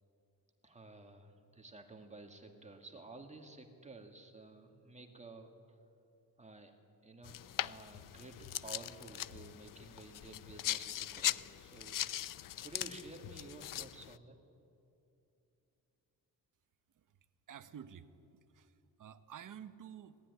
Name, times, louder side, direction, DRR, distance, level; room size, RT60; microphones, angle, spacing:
voice 1, 0.6-5.8 6.4-6.8 7.0-14.4, right 2 dB, 20° right, 3 dB, 2.2 m, -53 dB
sound 1, 7.2-14.2, left 12 dB, 60° left, 0.6 m, -40 dB
voice 2, 17.5-20.2, right 9 dB, 55° right, 11 dB, 1.2 m, -52 dB
26.5 x 19.0 x 9.8 m, 2.7 s
wide cardioid pair, 155°, 37 cm